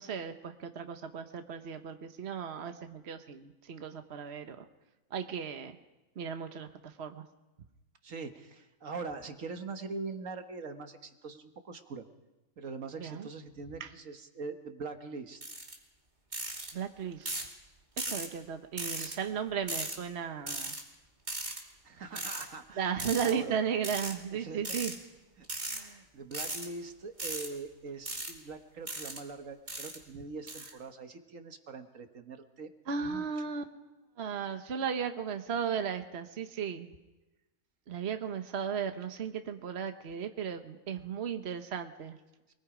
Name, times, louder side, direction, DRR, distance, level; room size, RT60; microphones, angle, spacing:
voice 1, 0.0-4.6 5.1-5.8 6.2-7.2 13.0-13.3 13.8-13.9 16.7-17.5 18.0-20.8 22.8-25.0 32.9-33.6 34.2-36.9 37.9-42.2, right 7 dB, 55° right, 7 dB, 1.3 m, -35 dB
voice 2, 8.0-12.0 12.6-15.4 18.9-19.2 21.8-22.9 23.2-23.6 24.3-24.6 25.4-33.2, right 4 dB, 75° right, 7 dB, 1.7 m, -43 dB
sound 1, 15.4-15.7 16.3-16.7 17.2-17.5 18.0-18.3 18.8-19.1 19.7-20.0 20.5-20.8 21.3-21.6 22.1-22.4 23.0-23.3 23.8-24.1 24.6-24.9 25.4-25.8 26.3-26.7 27.2-27.5 28.0-28.3 28.9-29.2 29.7-30.0 30.5-30.7, right 2 dB, 35° right, 2.9 m, -37 dB
28.5 x 20.5 x 5.0 m, 1.1 s
omnidirectional pair, 1.4 m